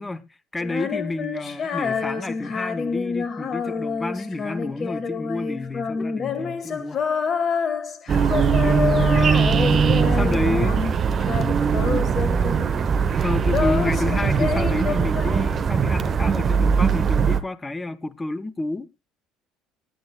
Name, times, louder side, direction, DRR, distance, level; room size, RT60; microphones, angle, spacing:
voice 1, 0.0-7.0 9.0-9.3 9.8-10.9 13.2-18.9, left 2 dB, 15° left, 0.7 m, -30 dB
Female singing, 0.6-10.9 11.2-12.9 13.1-15.8, left 5 dB, 40° left, 1.1 m, -28 dB
voice 2, 8.0-9.0 10.0-10.9 11.2-11.3 11.8-12.2, left 1 dB, 85° left, 1.3 m, -41 dB
sound 1, 8.1-17.4, right 6 dB, 40° right, 0.8 m, -20 dB
18.5 x 10.5 x 2.3 m
figure-of-eight pair, 60°, 0 cm